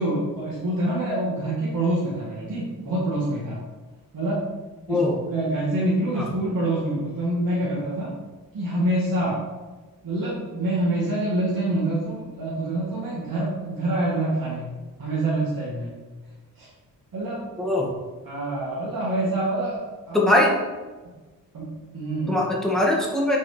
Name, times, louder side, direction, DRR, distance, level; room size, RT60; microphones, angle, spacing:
voice 1, 0.0-3.6 4.1-4.5 4.9-8.1 8.5-9.4 10.0-14.7 15.0-16.0 16.6-16.7 17.1-17.5 18.2-20.3 21.0-21.1 21.5-22.4, right 1 dB, 80° right, -8 dB, 2.1 m, -26 dB
voice 2, 20.1-20.5 22.3-23.4, left 1 dB, ahead, -3 dB, 1.9 m, -21 dB
7.1 x 4.8 x 5.1 m, 1.3 s
wide cardioid pair, 85°, 35 cm